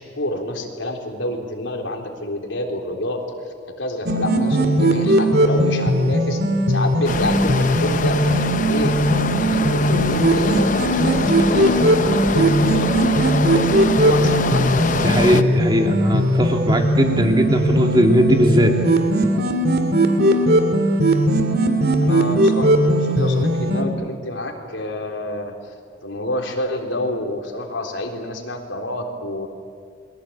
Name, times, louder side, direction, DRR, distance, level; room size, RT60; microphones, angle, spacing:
voice 1, 0.0-3.2 3.8-6.4 6.7-8.9 9.4-14.8 22.0-25.7 26.0-29.5, left 1 dB, 80° left, 2 dB, 3.8 m, -28 dB
sound 1, 4.1-23.8, right 1 dB, 50° right, 2.3 m, -19 dB
sound 2, 7.0-15.4, left 3 dB, 40° left, 0.7 m, -24 dB
voice 2, 15.0-18.7, equal, 20° right, 3 dB, 2.6 m, -18 dB
29.5 x 22.5 x 8.8 m, 2.2 s
head